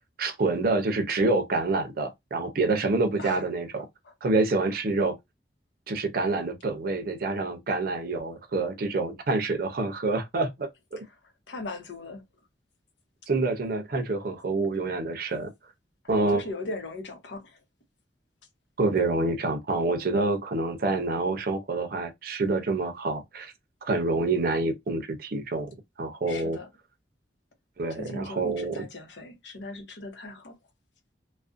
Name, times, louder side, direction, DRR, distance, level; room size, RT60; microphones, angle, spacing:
voice 1, 0.2-3.9 4.2-5.2 5.9-11.0 13.3-15.5 16.1-16.4 18.8-23.5 23.8-25.7 26.0-26.6 27.8-28.8, right 3 dB, 55° right, 0.5 m, -27 dB
voice 2, 3.7-4.1 11.0-11.2 11.5-12.2 16.0-17.6 26.3-26.7 27.9-30.6, left 2 dB, 90° left, 0.7 m, -39 dB
2.4 x 2.1 x 2.4 m
head